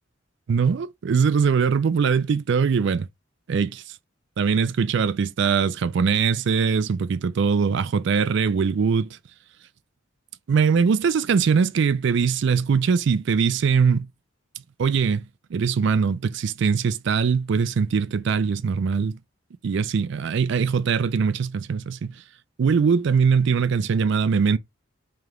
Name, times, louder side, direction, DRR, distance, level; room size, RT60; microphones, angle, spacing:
voice 1, 0.5-3.1 3.5-3.8 4.4-9.2 10.5-14.1 14.8-15.2 15.5-19.2 19.6-22.1 22.6-24.6, right 6 dB, 60° right, 0.4 m, -21 dB
3.3 x 2.9 x 3.6 m
head